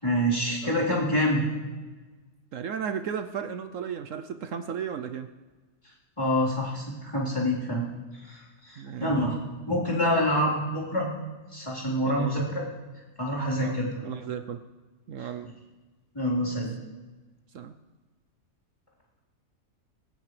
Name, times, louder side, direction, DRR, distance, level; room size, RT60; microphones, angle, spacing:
voice 1, 0.0-1.4 6.2-7.9 8.2-9.4 9.7-11.1 11.5-12.6 13.2-14.1 16.1-16.7, equal, 20° left, -7 dB, 4.0 m, -26 dB
voice 2, 2.5-5.3 8.8-9.1 12.0-12.4 13.6-13.8 14.0-14.6 15.1-15.5 16.4-16.6 17.5-17.7, right 7 dB, 70° right, 7 dB, 1.0 m, -34 dB
20.5 x 17.5 x 3.3 m, 1.3 s
omnidirectional pair, 1.5 m